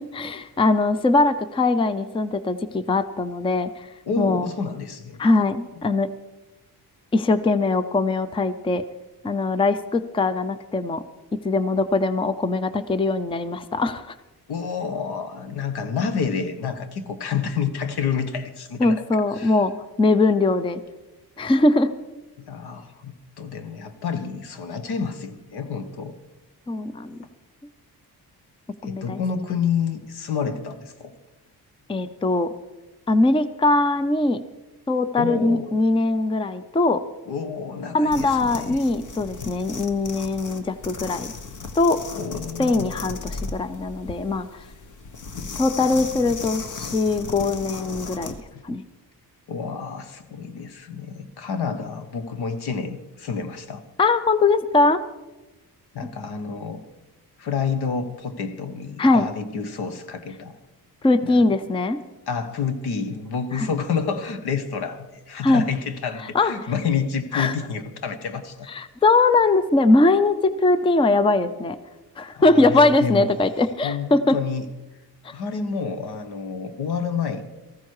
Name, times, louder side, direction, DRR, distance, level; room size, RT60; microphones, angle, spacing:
voice 1, 0.0-3.9 4.2-4.5 5.2-6.1 7.1-8.8 9.2-11.0 11.4-14.1 18.8-19.7 20.0-20.8 21.4-21.9 26.7-27.2 28.8-29.2 31.9-32.5 33.1-34.4 34.9-37.0 37.9-41.3 41.8-42.0 42.6-44.5 45.6-48.3 48.6-48.8 54.0-55.0 59.0-59.3 61.0-62.0 63.6-63.7 65.4-65.6 66.3-66.5 67.3-67.5 68.8-71.8 72.2-74.4, left 2 dB, 15° left, 13 dB, 0.5 m, -21 dB
voice 2, 4.1-5.2 14.5-19.0 19.3-19.6 22.4-26.1 28.8-31.1 35.2-35.7 37.2-38.8 42.2-42.9 48.5-48.6 49.5-53.8 55.9-56.8 57.4-60.5 61.2-61.4 62.3-68.7 72.4-73.3 73.8-74.6 75.3-77.5, left 6 dB, 75° left, 10 dB, 1.5 m, -29 dB
sound 1, 38.0-48.4, left 4 dB, 50° left, 1.2 m, -36 dB
18.5 x 14.5 x 4.8 m, 1.1 s
wide cardioid pair, 160°, 39 cm